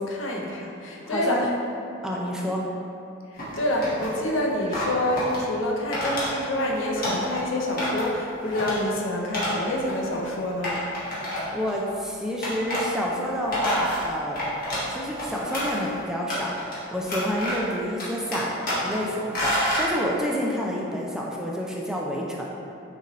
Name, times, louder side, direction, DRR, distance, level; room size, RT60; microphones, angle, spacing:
voice 1, 0.0-1.5 3.6-10.8, left 1 dB, 75° left, -1 dB, 0.6 m, -27 dB
voice 2, 1.1-1.5 2.0-2.6 11.5-14.4 14.9-16.5 16.9-22.5, equal, 5° right, -3 dB, 0.3 m, -29 dB
sound 1, 3.4-4.1 4.7-5.4 5.9-6.3 6.6-7.4 7.8-8.1 8.5-8.8 9.3-9.6 9.9-10.0 10.6-11.7 12.4-12.8 13.3-14.9 15.2-15.9 16.3-16.8 17.0-17.7 18.0-19.0 19.3-19.9, left 1 dB, 45° left, 1.3 m, -28 dB
6.4 x 2.7 x 3.0 m, 2.7 s
head